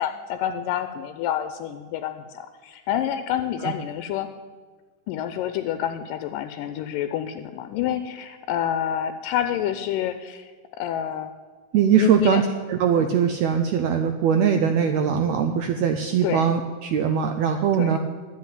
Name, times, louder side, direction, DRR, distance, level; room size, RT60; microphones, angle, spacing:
voice 1, 0.0-4.3 5.1-11.3 11.9-12.4 16.2-16.5 17.7-18.0, left 10 dB, 85° left, 9 dB, 2.2 m, -28 dB
voice 2, 11.7-12.4 12.7-18.0, right 7 dB, 90° right, 6 dB, 1.5 m, -21 dB
10.5 x 7.7 x 9.2 m, 1.5 s
omnidirectional pair, 3.9 m